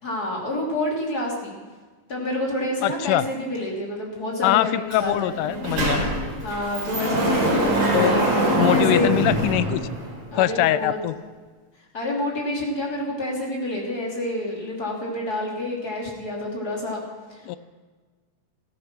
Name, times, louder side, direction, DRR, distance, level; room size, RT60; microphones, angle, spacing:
voice 1, 0.0-1.5 2.1-5.3 6.4-8.3 8.7-9.1 10.3-11.0 11.9-17.0 17.3-17.6, left 1 dB, 30° left, -2 dB, 3.2 m, -28 dB
voice 2, 2.8-3.3 4.4-6.1 7.9-8.2 8.6-9.8 10.4-11.2 17.5-17.6, left 13 dB, 80° left, 14 dB, 2.0 m, -22 dB
Sliding door, 4.9-5.0 5.3-10.3, right 1 dB, 50° right, 4.9 m, -23 dB
16.5 x 14.0 x 6.1 m, 1.4 s
omnidirectional pair, 3.9 m